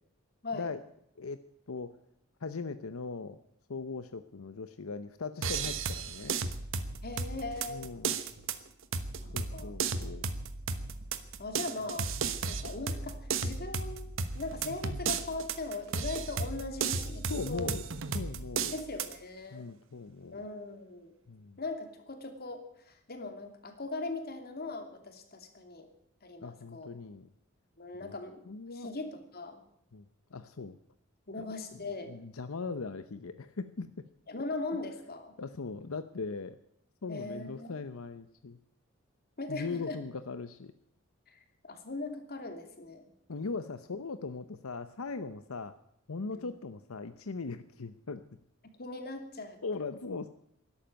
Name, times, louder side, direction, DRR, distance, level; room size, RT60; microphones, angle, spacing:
voice 1, 2.4-3.4 3.7-6.4 7.7-8.2 9.3-10.2 17.3-17.8 18.1-18.7 19.5-20.4 21.3-21.6 26.4-27.3 28.0-28.2 28.5-28.9 29.9-30.0 30.3-30.8 31.9-34.0 34.7-34.8 35.4-36.6 37.0-38.6 39.5-40.7 43.3-45.7 46.1-48.2 49.6-50.3, left 4 dB, 85° left, 11 dB, 0.8 m, -39 dB
sound 1, 5.4-19.1, right 5 dB, 70° right, 1.2 m, -35 dB
voice 2, 7.0-8.0 9.2-9.7 11.4-12.1 12.4-17.8 18.7-19.7 20.3-21.1 21.6-25.9 26.2-26.9 27.8-28.4 28.7-29.6 31.3-32.2 34.3-35.3 37.1-37.8 39.4-40.0 41.3-43.1 46.3-46.6 48.6-49.6, left 3 dB, 50° left, 6 dB, 2.7 m, -40 dB
13.0 x 11.5 x 9.2 m, 0.75 s
head